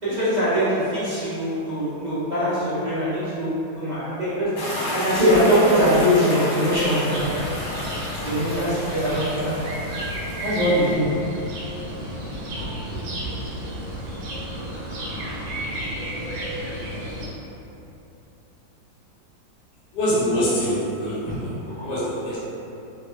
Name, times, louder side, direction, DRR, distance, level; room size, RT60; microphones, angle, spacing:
voice 1, 0.0-4.6 4.9-7.3 8.2-9.6 10.4-11.1 12.6-12.7 21.2-21.4 21.8-21.9, equal, 90° right, -14 dB, 0.4 m, -22 dB
sound 1, 4.6-10.9, left 1 dB, 90° left, 1.6 m, -31 dB
sound 2, 7.1-17.3, equal, 75° right, 1.3 m, -32 dB
voice 2, 19.9-22.4, equal, 65° left, -10 dB, 1.5 m, -25 dB
3.6 x 2.2 x 3.1 m, 2.9 s
omnidirectional pair, 2.1 m